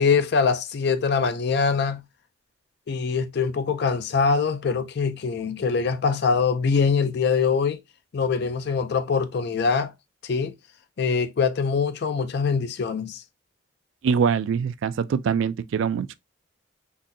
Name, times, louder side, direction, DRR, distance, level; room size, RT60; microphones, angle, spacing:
voice 1, 0.0-2.0 2.9-7.8 8.1-9.9 10.3-10.5 11.0-13.2, left 5 dB, 55° left, 0.4 m, -23 dB
voice 2, 14.0-16.1, right 6 dB, 65° right, 0.3 m, -23 dB
3.9 x 2.6 x 2.6 m
head